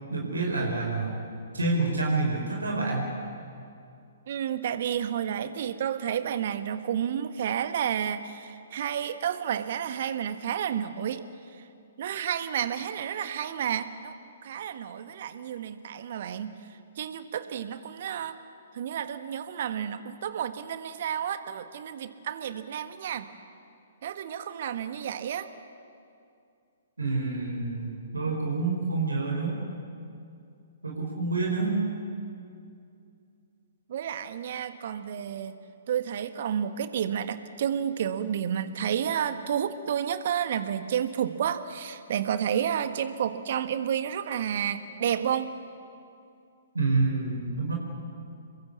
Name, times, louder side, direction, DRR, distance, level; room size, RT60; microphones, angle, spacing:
voice 1, 0.1-1.1 1.5-3.1 27.0-29.6 30.8-31.8 46.7-47.7, right 3 dB, 80° right, 0 dB, 4.8 m, -28 dB
voice 2, 4.3-11.2 11.5-11.7 12.0-14.1 14.4-16.6 17.0-18.3 18.7-23.3 24.0-25.5 33.9-35.6 35.9-45.5, right 9 dB, 50° right, 11 dB, 1.5 m, -31 dB
27.5 x 22.5 x 8.3 m, 2.5 s
figure-of-eight pair, 120°, 0 cm